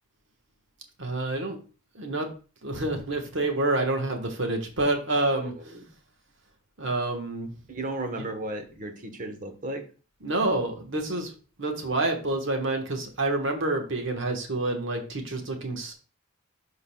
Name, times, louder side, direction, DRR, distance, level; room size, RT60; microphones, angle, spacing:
voice 1, 1.0-1.6 1.9-2.3 2.6-5.5 6.8-7.5 8.2-8.3 10.2-11.3 11.6-15.9, right 2 dB, 60° right, 4 dB, 1.3 m, -28 dB
voice 2, 5.2-5.8 7.7-9.8, right 2 dB, 40° right, 6 dB, 1.1 m, -35 dB
11.5 x 3.9 x 2.3 m, 0.35 s
head